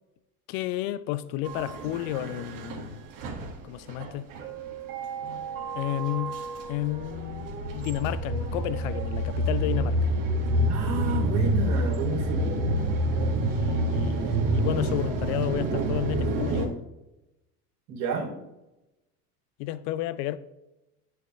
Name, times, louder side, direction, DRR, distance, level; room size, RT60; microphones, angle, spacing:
voice 1, 0.5-3.0 3.6-4.3 5.7-6.4 6.7-10.1 13.4-16.8 19.6-20.4, left 14 dB, 60° left, 0.6 m, -32 dB
sound 1, 1.4-16.7, right 1 dB, 50° right, 1.7 m, -28 dB
voice 2, 10.7-12.6 17.9-18.3, right 4 dB, 65° right, 3.1 m, -31 dB
8.4 x 7.1 x 3.2 m
hypercardioid pair, 95°, 43 cm